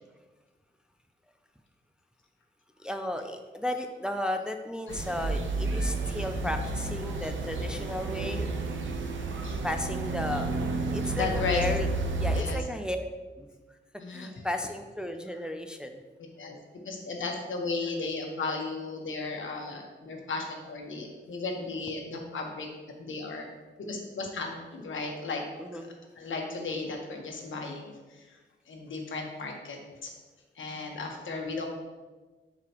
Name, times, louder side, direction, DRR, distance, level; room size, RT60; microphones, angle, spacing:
voice 1, 2.8-8.5 9.6-10.5 10.9-11.9 12.2-13.0 13.4-13.5 14.1-16.0 25.6-25.9, left 1 dB, 5° right, 5 dB, 0.4 m, -34 dB
sound 1, 4.9-12.4, right 2 dB, 75° right, 0.8 m, -31 dB
voice 2, 11.2-11.6 12.3-12.6 14.0-14.3 16.4-16.6 16.8-22.7 23.0-23.5 23.9-25.4 26.2-28.4 28.7-30.1 30.5-31.7, left 3 dB, 80° left, 1 dB, 1.3 m, -35 dB
10.5 x 4.9 x 3.0 m, 1.3 s
wide cardioid pair, 165°, 20 cm